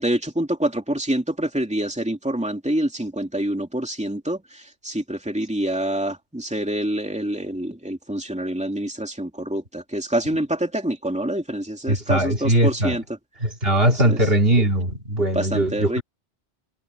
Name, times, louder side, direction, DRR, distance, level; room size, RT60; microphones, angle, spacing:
voice 1, 0.0-13.0 14.0-14.2 15.3-16.0, right 1 dB, 5° right, 2.8 m, -26 dB
voice 2, 11.9-13.0 13.4-16.0, right 1 dB, 55° right, 2.9 m, -20 dB
omnidirectional pair, 1.2 m